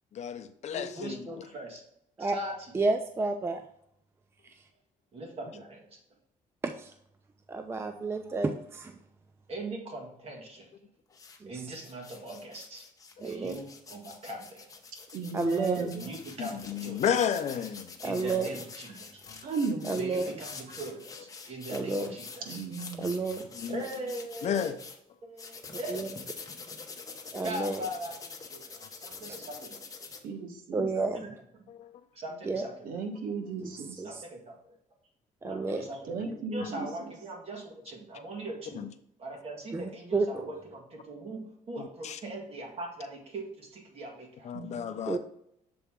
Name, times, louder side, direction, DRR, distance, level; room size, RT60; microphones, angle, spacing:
voice 1, 0.2-1.2 16.4-17.9 23.6-23.8 24.4-24.8 31.7-31.9 38.8-38.9 42.0-42.2 44.4-45.2, left 8 dB, 55° left, 0.6 m, -31 dB
voice 2, 0.7-1.8 2.2-2.7 5.1-6.0 9.5-10.7 11.5-12.8 13.2-14.6 15.9-17.3 18.0-19.1 19.9-22.6 23.7-24.8 25.3-26.1 27.4-29.8 30.9-31.6 32.1-32.7 34.0-34.6 35.5-38.9 39.2-44.5, right 1 dB, 45° right, 1.9 m, -41 dB
voice 3, 2.7-3.6 6.6-6.9 7.5-9.0 11.4-11.5 13.2-13.6 15.3-15.9 18.0-18.5 19.9-20.3 21.7-22.2 23.0-23.5 25.9-26.1 27.3-27.8 29.3-29.4 30.7-31.3 32.5-32.7 33.6-33.7 34.0-34.1 35.4-35.8 39.7-40.5 45.1-45.2, right 3 dB, 15° right, 0.4 m, -30 dB
sound 1, 11.1-11.4 11.7-25.0 25.4-30.2, left 4 dB, 25° left, 0.9 m, -46 dB
voice 4, 15.1-16.1 19.4-20.0 22.5-23.2 30.2-30.9 32.8-34.0 36.1-36.9 44.5-44.8, right 4 dB, 80° right, 1.2 m, -35 dB
6.9 x 4.2 x 3.6 m
cardioid pair, 140°, 14 cm